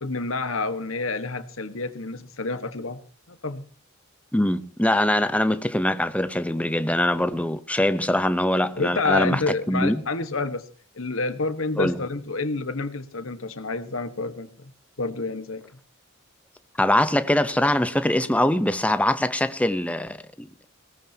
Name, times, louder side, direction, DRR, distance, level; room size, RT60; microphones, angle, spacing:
voice 1, 0.0-3.0 3.3-3.6 8.8-10.7 10.9-14.5 15.0-15.6, left 3 dB, 70° left, 1.4 m, -28 dB
voice 2, 4.3-10.0 11.8-12.0 16.8-20.7, left 1 dB, 5° left, 0.8 m, -23 dB
21.0 x 18.0 x 2.9 m
head